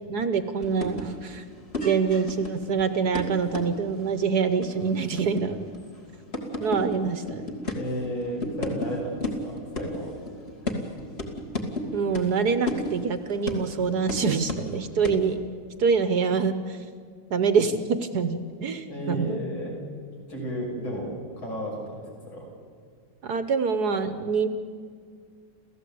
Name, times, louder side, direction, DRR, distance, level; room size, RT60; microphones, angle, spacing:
voice 1, 0.1-1.4 1.8-5.7 6.6-7.6 11.9-15.4 15.8-16.8 17.3-17.8 18.1-19.4 23.2-24.5, right 5 dB, 60° right, 10 dB, 1.4 m, -25 dB
sound 1, 0.6-8.9 9.2-14.8 15.0-15.3, left 2 dB, 30° left, 2.5 m, -34 dB
voice 2, 7.7-9.2 9.4-10.1 18.8-19.8 20.3-22.5, equal, 80° left, -1 dB, 7.1 m, -33 dB
29.0 x 15.0 x 8.6 m, 2.1 s
omnidirectional pair, 2.2 m